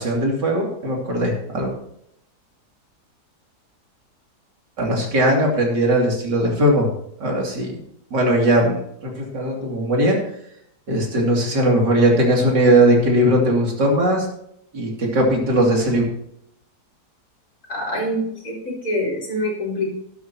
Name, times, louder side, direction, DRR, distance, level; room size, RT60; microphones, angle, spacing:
voice 1, 0.0-1.7 4.8-6.9 7.2-7.7 8.1-8.8 9.0-10.2 10.9-14.3 14.7-16.0, right 1 dB, 85° right, -1 dB, 3.4 m, -19 dB
voice 2, 17.7-19.9, left 1 dB, 60° left, -3 dB, 4.8 m, -25 dB
13.0 x 11.5 x 2.9 m, 0.73 s
omnidirectional pair, 1.8 m